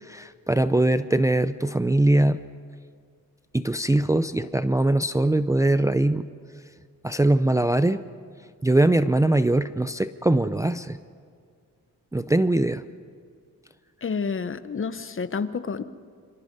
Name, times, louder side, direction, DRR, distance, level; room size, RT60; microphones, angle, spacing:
voice 1, 0.1-2.4 3.5-6.3 7.0-8.0 8.6-11.0 12.1-12.8, right 1 dB, 10° right, 11 dB, 0.5 m, -21 dB
voice 2, 14.0-15.8, left 5 dB, 35° left, 13 dB, 0.9 m, -29 dB
27.0 x 24.5 x 5.3 m, 2.1 s
cardioid pair, 105°, 34 cm